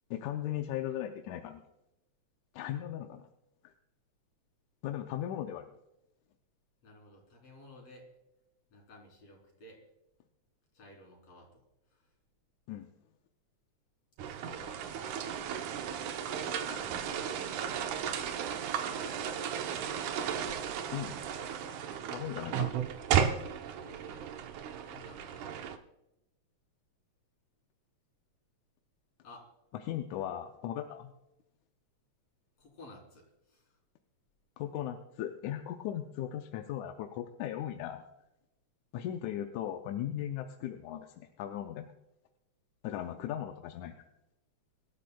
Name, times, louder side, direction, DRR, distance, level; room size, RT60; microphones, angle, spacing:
voice 1, 0.1-1.6 2.5-3.3 3.6-3.7 4.8-5.7 12.7-12.9 20.9-21.2 22.1-22.7 29.7-31.1 34.6-38.1 38.9-41.9 42.8-44.0, left 11 dB, 80° left, 5 dB, 2.1 m, -37 dB
voice 2, 6.8-8.1 8.7-9.8 10.7-11.6 11.9-12.1 14.2-15.3 16.1-17.6 18.8-19.9 23.8-24.2 24.8-25.7 29.2-29.5 32.6-33.8, left 1 dB, 60° left, 0 dB, 4.4 m, -53 dB
sound 1, 14.2-25.8, right 8 dB, 85° right, 2.4 m, -34 dB
25.5 x 12.5 x 2.3 m, 0.91 s
omnidirectional pair, 3.4 m